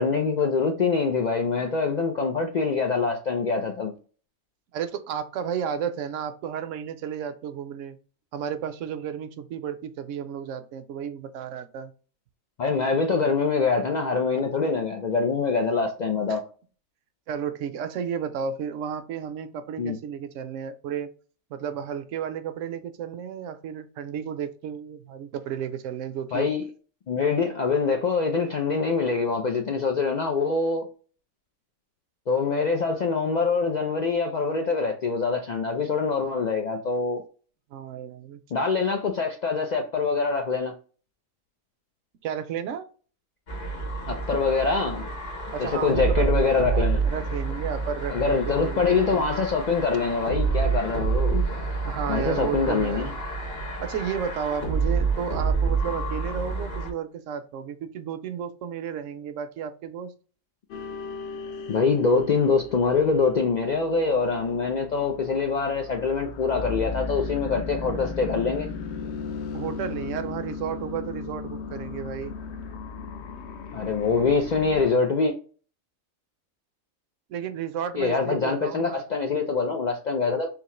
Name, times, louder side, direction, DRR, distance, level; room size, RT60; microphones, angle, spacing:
voice 1, 0.0-3.9 12.6-16.4 19.8-20.0 26.3-26.6 27.1-30.9 32.3-37.2 38.5-40.7 44.1-45.1 45.6-47.0 48.1-51.4 52.1-53.1 61.7-68.7 73.7-75.3 78.0-80.5, left 4 dB, 90° left, 0.3 m, -24 dB
voice 2, 4.7-8.0 8.3-11.9 14.3-14.5 16.3-16.4 17.3-21.1 21.5-26.5 37.7-38.4 42.2-42.9 45.5-49.3 51.9-53.1 53.8-60.1 69.5-72.3 77.3-79.0, right 8 dB, 75° right, 0.9 m, -33 dB
sound 1, 43.5-56.9, right 4 dB, 50° left, 1.2 m, -28 dB
sound 2, 60.7-74.9, left 5 dB, 65° left, 0.8 m, -36 dB
3.7 x 2.7 x 2.9 m
omnidirectional pair, 1.4 m